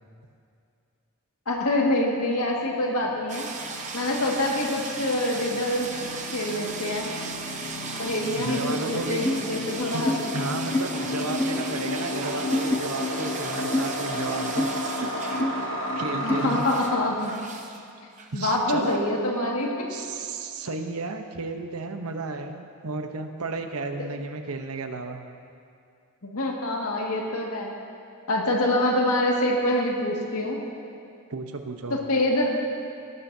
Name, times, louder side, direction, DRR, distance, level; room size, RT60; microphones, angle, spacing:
voice 1, 1.5-3.5 3.9-5.9 6.3-7.1 8.0-10.3 16.2-17.3 18.3-19.7 26.2-27.7 28.3-30.6 31.9-32.5, left 1 dB, 80° left, -1 dB, 2.0 m, -25 dB
sound 1, 1.9-17.1, left 1 dB, 60° left, 1.3 m, -33 dB
sound 2, 3.3-15.7 15.9-17.8 18.2-19.0, right 4 dB, 35° right, 0.9 m, -37 dB
voice 2, 8.4-9.2 9.9-15.1 15.4-15.5 16.0-16.7 18.3-19.0 19.9-25.2 31.3-32.0, right 3 dB, 85° right, 6 dB, 0.9 m, -33 dB
sound 3, 9.2-9.4 10.0-10.2 10.7-10.9 11.4-11.6 12.5-12.8 13.7-13.9 14.6-14.7 15.4-15.5 16.3-16.5, left 1 dB, 10° left, 0.3 m, -25 dB
18.0 x 12.5 x 2.7 m, 2.4 s
head